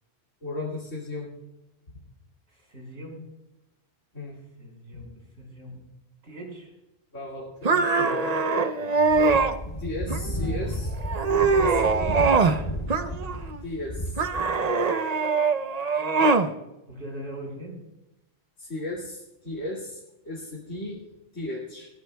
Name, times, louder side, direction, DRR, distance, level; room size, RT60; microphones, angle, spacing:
voice 1, 0.4-1.3 4.1-4.4 7.1-8.3 9.8-10.9 11.6-12.3 13.6-14.2 18.6-21.0 21.3-21.9, left 2 dB, 75° left, -4 dB, 2.7 m, -35 dB
voice 2, 2.5-3.2 4.3-5.8 6.2-6.7 8.8-9.5 16.9-17.7, equal, 85° right, -1 dB, 5.5 m, -41 dB
sound 1, 7.6-9.5 10.1-10.6 11.0-12.6 12.9-13.6 14.2-16.5, right 4 dB, 40° right, 0.7 m, -23 dB
sound 2, 9.1-14.4, equal, 30° left, 2.6 m, -32 dB
22.0 x 15.5 x 2.3 m, 0.96 s
omnidirectional pair, 1.3 m